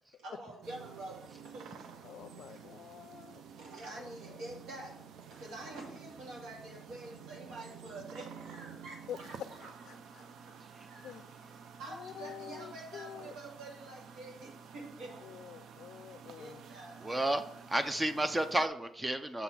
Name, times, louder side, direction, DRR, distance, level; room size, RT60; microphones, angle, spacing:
voice 1, 0.2-1.8 2.5-2.6 3.6-5.0 5.3-9.6 10.2-10.6 10.9-11.2 11.4-15.2 16.3-17.1, right 2 dB, 80° right, -1 dB, 2.1 m, -47 dB
sound 1, 0.6-18.7, right 7 dB, 65° right, 0.5 m, -51 dB
voice 2, 2.0-3.4 3.9-4.4 9.1-9.2 9.6-10.2 11.0-11.6 11.9-13.4 15.2-16.6, left 10 dB, 65° left, 10 dB, 0.3 m, -48 dB
voice 3, 17.0-19.4, right 1 dB, 15° right, 10 dB, 0.4 m, -32 dB
6.7 x 4.0 x 5.8 m, 0.74 s
cardioid pair, 125°, 0 cm